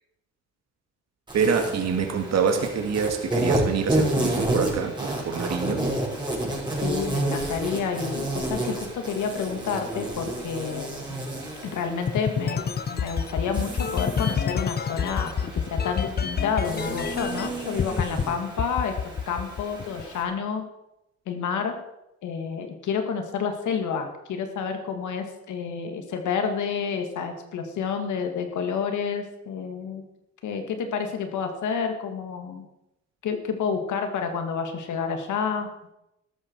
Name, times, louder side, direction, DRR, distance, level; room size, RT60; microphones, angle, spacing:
Insect, 1.3-20.2, right 1 dB, 15° right, 6.1 m, -31 dB
voice 1, 1.3-5.9, right 6 dB, 60° right, 4 dB, 2.3 m, -26 dB
voice 2, 6.8-11.2 11.6-18.9 19.3-20.6 21.3-21.7 22.2-30.0 30.4-32.6 33.2-35.7, left 6 dB, 75° left, 5 dB, 2.4 m, -29 dB
sound 1, 12.1-17.5 17.8-18.2 18.6-20.0, left 7 dB, 35° left, 0.7 m, -27 dB
13.5 x 12.5 x 4.8 m, 0.88 s
cardioid pair, 90°, 30 cm